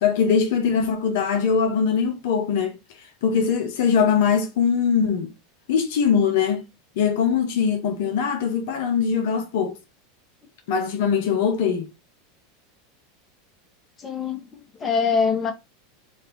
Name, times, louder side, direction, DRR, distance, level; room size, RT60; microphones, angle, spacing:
voice 1, 0.0-2.8 3.2-5.3 5.7-6.6 7.0-9.8 10.7-11.9, left 6 dB, 65° left, 0.7 m, -21 dB
voice 2, 14.0-15.5, left 5 dB, 25° left, 1.1 m, -24 dB
4.1 x 2.6 x 3.7 m
hypercardioid pair, 95°, 0 cm